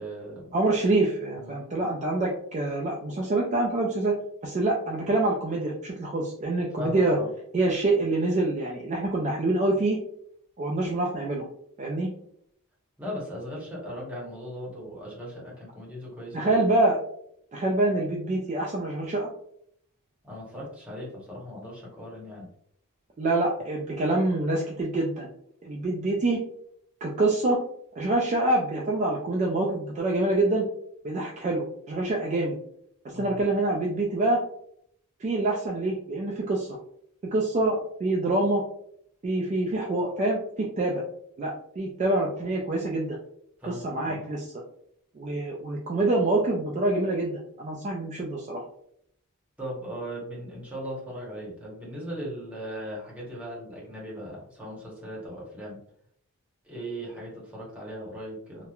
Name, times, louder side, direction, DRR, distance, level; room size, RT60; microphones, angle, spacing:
voice 1, 0.0-0.5 1.4-1.6 6.7-7.3 13.0-16.6 20.2-22.5 33.1-33.4 43.6-44.2 49.6-55.8 56.6-58.7, equal, 5° right, -6 dB, 0.9 m, -38 dB
voice 2, 0.5-4.2 4.4-7.2 7.5-10.0 10.6-11.4 11.8-12.1 16.3-17.0 17.5-19.3 23.2-25.3 25.6-26.4 27.0-27.6 28.0-30.7 31.0-32.5 33.1-34.4 35.2-36.7 37.3-38.6 39.2-41.0 41.4-43.2 43.6-44.5 45.2-48.6, right 2 dB, 30° right, -2 dB, 0.3 m, -26 dB
2.9 x 2.1 x 2.3 m, 0.69 s
head